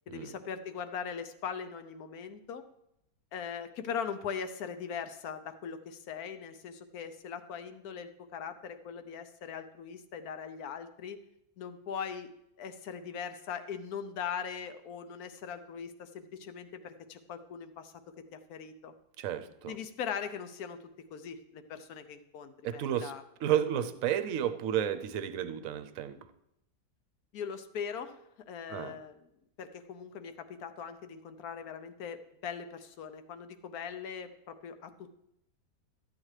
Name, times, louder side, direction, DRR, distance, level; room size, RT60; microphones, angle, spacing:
voice 1, 0.1-2.6 3.3-11.2 11.6-12.3 12.6-18.9 19.7-20.8 21.1-23.2 27.3-28.2 28.5-29.2 29.6-35.1, left 7 dB, 70° left, 9 dB, 1.1 m, -40 dB
voice 2, 19.2-19.7 22.6-23.1 23.4-26.2 28.7-29.0, right 10 dB, 65° right, 11 dB, 0.9 m, -32 dB
13.5 x 8.7 x 3.2 m, 0.79 s
omnidirectional pair, 1.8 m